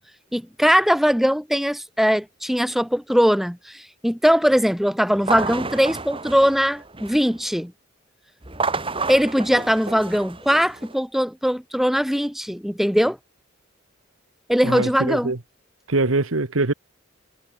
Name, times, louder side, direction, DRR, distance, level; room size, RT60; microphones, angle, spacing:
voice 1, 0.3-7.7 9.1-13.2 14.5-15.3, equal, ahead, 3.2 m, -20 dB
sound 1, 5.2-7.4 8.4-10.9, right 4 dB, 25° right, 3.6 m, -30 dB
voice 2, 14.6-15.4 15.9-16.7, right 2 dB, 85° right, 1.5 m, -23 dB
head